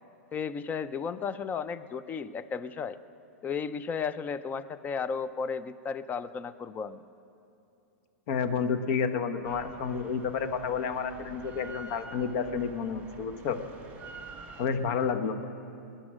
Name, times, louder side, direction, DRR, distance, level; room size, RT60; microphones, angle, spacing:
voice 1, 0.3-3.0 3.4-7.0, left 6 dB, 20° left, 14 dB, 0.5 m, -34 dB
voice 2, 8.3-13.6 14.6-15.3, left 6 dB, 50° left, 10 dB, 1.1 m, -30 dB
Drill, 9.4-14.7, right 4 dB, 20° right, 2.4 m, -47 dB
20.0 x 10.0 x 6.2 m, 2.7 s
hypercardioid pair, 125°, 8 cm